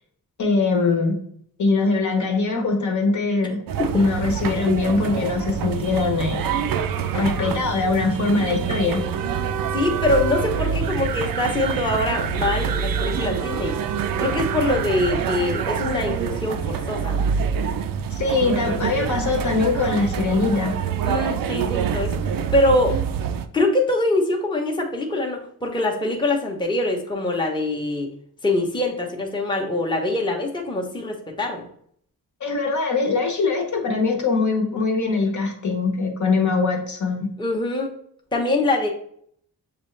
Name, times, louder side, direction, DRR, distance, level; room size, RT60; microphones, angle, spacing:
voice 1, 0.4-1.2 1.6-3.6 3.9-6.6 7.1-9.0 18.1-20.8 32.4-37.3, left 3 dB, 50° left, 3 dB, 1.0 m, -22 dB
sound 1, 3.7-23.5, right 7 dB, 65° right, 0.5 m, -26 dB
voice 2, 9.7-13.7 14.2-17.3 21.0-22.2 22.5-23.0 23.5-28.1 28.4-31.7 37.4-37.9 38.3-38.9, left 2 dB, 15° left, 0 dB, 0.8 m, -23 dB
6.5 x 2.4 x 3.2 m, 0.65 s
cardioid pair, 85°, 37 cm